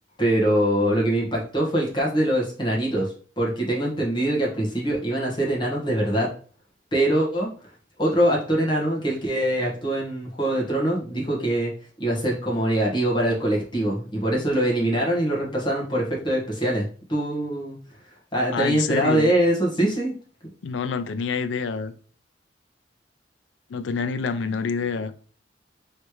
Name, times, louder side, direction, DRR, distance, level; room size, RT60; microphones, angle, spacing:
voice 1, 0.2-6.3 6.9-7.5 8.0-11.7 12.0-17.8 18.3-20.1, right 1 dB, 25° left, 1.3 m, -23 dB
voice 2, 18.5-19.3 20.6-21.9 23.7-25.1, left 5 dB, 85° left, 0.4 m, -27 dB
3.2 x 3.1 x 4.6 m
head